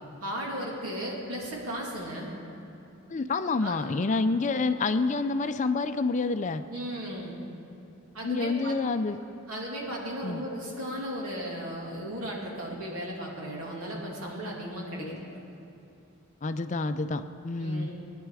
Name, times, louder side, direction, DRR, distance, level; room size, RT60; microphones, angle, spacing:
voice 1, 0.2-2.3 3.6-3.8 4.5-4.7 6.7-7.3 8.1-8.7 9.5-15.4 17.6-17.9, equal, 90° right, -3 dB, 2.7 m, -36 dB
voice 2, 3.1-6.6 8.2-9.2 10.2-10.4 15.0-15.2 16.4-17.9, left 3 dB, 35° left, 10 dB, 0.4 m, -28 dB
18.5 x 10.0 x 4.9 m, 2.9 s
head